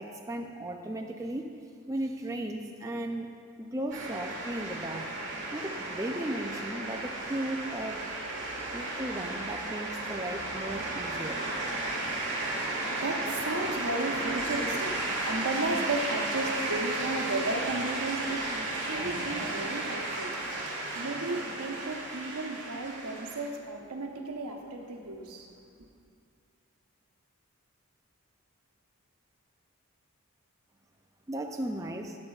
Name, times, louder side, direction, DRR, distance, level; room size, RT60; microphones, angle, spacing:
voice 1, 0.0-1.6 1.9-3.3 3.6-5.1 5.5-8.0 8.7-11.4 31.3-32.2, right 1 dB, 15° right, 2 dB, 0.4 m, -36 dB
sound 1, 3.9-23.5, right 2 dB, 50° right, 1.7 m, -34 dB
voice 2, 12.2-25.5, right 2 dB, 90° right, 2 dB, 1.0 m, -34 dB
13.0 x 9.1 x 2.4 m, 2.2 s
head